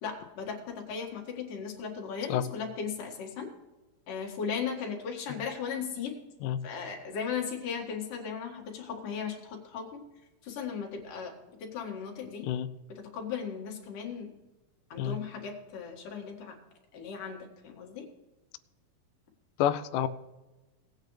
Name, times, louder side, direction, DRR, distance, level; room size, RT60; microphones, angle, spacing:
voice 1, 0.0-3.5 4.1-6.2 6.6-10.0 10.4-11.3 11.6-12.5 13.1-14.3 14.9-16.6 16.9-17.4 17.6-18.1, left 6 dB, 65° left, 0 dB, 3.4 m, -37 dB
voice 2, 19.6-20.1, left 10 dB, 85° left, 11 dB, 1.8 m, -28 dB
18.5 x 8.9 x 3.2 m, 1.1 s
omnidirectional pair, 4.3 m